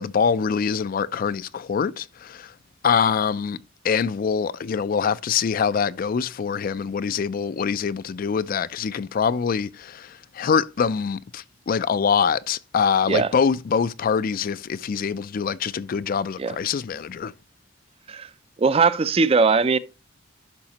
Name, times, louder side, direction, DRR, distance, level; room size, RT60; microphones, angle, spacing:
voice 1, 0.0-2.5 2.8-3.6 3.8-17.3, left 6 dB, 45° left, 0.3 m, -24 dB
voice 2, 18.6-19.8, right 4 dB, 30° right, 0.4 m, -20 dB
10.5 x 5.8 x 2.9 m
head